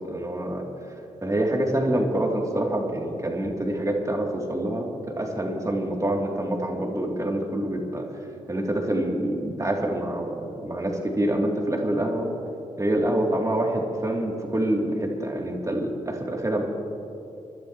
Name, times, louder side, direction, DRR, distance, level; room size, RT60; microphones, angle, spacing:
voice 1, 0.1-0.6 1.2-4.9 5.2-8.0 8.5-12.3 12.8-16.6, right 1 dB, 25° right, -1 dB, 2.9 m, -26 dB
26.5 x 11.5 x 3.1 m, 2.9 s
supercardioid pair, 50°, 13 cm